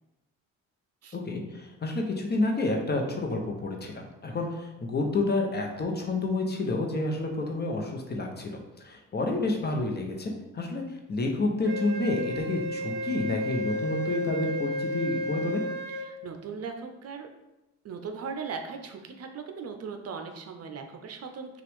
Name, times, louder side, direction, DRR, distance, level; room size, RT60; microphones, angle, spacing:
voice 1, 1.1-10.8 11.1-15.6, left 2 dB, 35° left, 2 dB, 0.9 m, -29 dB
Wind instrument woodwind instrument, 11.6-16.1, left 1 dB, 35° right, 1.4 m, -32 dB
voice 2, 15.9-17.3 17.8-21.6, right 5 dB, 55° right, 5 dB, 0.6 m, -38 dB
5.8 x 2.5 x 3.6 m, 0.97 s
cardioid pair, 90°, 30 cm